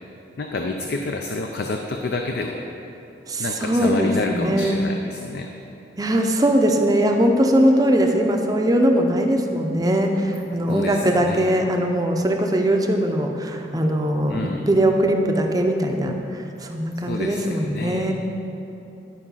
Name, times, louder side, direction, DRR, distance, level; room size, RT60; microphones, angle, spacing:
voice 1, 0.4-2.7 3.4-5.5 10.7-11.5 14.3-14.6 17.0-18.1, left 2 dB, 65° left, 3 dB, 0.5 m, -28 dB
voice 2, 3.3-4.8 6.0-18.1, right 1 dB, 20° right, 3 dB, 0.6 m, -20 dB
11.0 x 5.0 x 5.6 m, 2.9 s
head